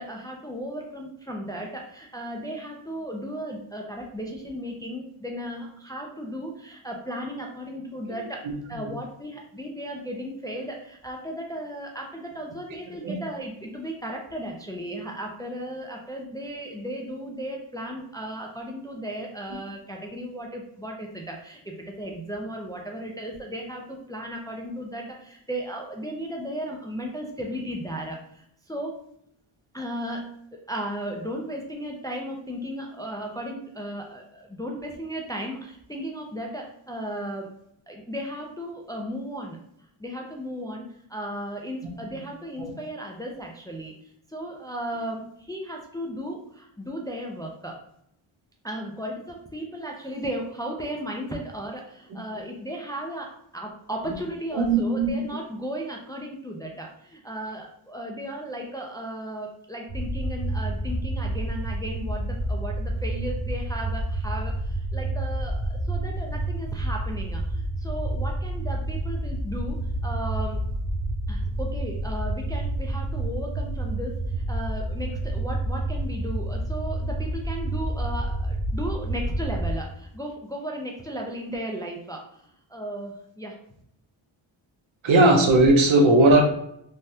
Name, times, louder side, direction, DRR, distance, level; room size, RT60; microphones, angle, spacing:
voice 1, 0.0-8.4 8.7-29.0 29.7-37.5 37.9-39.6 40.0-43.9 44.3-47.8 48.6-69.8 70.0-70.6 71.3-83.6, equal, 10° left, 0 dB, 0.4 m, -35 dB
voice 2, 54.5-55.1 85.0-86.4, right 2 dB, 70° right, 2 dB, 0.8 m, -18 dB
sound 1, 59.9-79.8, right 1 dB, 15° right, 0.9 m, -29 dB
3.4 x 2.2 x 2.7 m, 0.73 s
cardioid pair, 85°, 49 cm